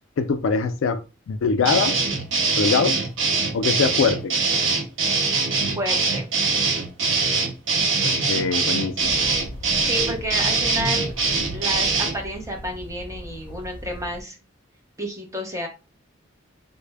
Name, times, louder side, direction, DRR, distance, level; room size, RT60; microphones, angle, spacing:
voice 1, 0.2-1.0 1.3-2.0 2.6-3.0 3.5-4.3 8.0-9.1, left 5 dB, 75° left, 0.4 m, -22 dB
sound 1, 1.7-12.2, right 4 dB, 65° right, 0.7 m, -23 dB
voice 2, 5.8-6.3 9.9-11.1 11.5-14.4 15.0-15.7, equal, 15° right, 0.7 m, -30 dB
sound 2, 9.0-14.2, equal, 25° left, 0.7 m, -39 dB
3.3 x 2.1 x 3.3 m
head